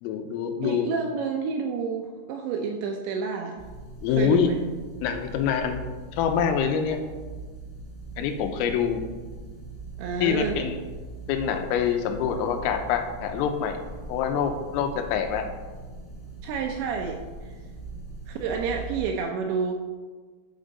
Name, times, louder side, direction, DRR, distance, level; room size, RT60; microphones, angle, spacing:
voice 1, 0.0-1.0 4.0-4.5 5.0-5.8 6.1-7.0 8.2-9.0 10.2-10.8 11.3-13.8 14.1-15.5, left 8 dB, 85° left, 6 dB, 3.4 m, -25 dB
voice 2, 0.6-3.6 4.1-4.6 10.0-10.6 16.4-17.5 18.3-19.7, right 5 dB, 80° right, 2 dB, 2.6 m, -29 dB
sound 1, 3.6-19.1, right 3 dB, 15° left, 1.7 m, -41 dB
13.0 x 6.2 x 4.0 m, 1.4 s
omnidirectional pair, 5.9 m